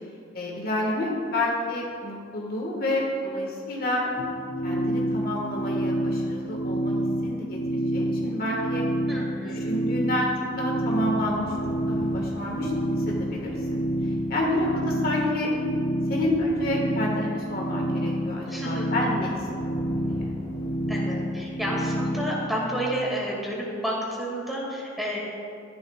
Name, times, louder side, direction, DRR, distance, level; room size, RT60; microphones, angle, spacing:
voice 1, 0.3-4.0 4.6-6.9 7.2-8.8 9.4-10.3 10.6-11.5 11.9-12.7 13.1-13.8 14.3-15.5 16.1-20.2, left 1 dB, 50° left, -2 dB, 1.7 m, -29 dB
sound 1, 4.2-22.4, equal, 35° left, 0.8 m, -28 dB
sound 2, 5.2-8.2 8.6-8.7 8.8-8.9 9.2-9.3 9.8-17.5 17.8-22.1, equal, 20° left, 2.3 m, -44 dB
voice 2, 9.1-9.7 18.5-18.9 20.9-25.2, equal, ahead, -5 dB, 2.2 m, -30 dB
14.0 x 11.0 x 2.4 m, 2.4 s
head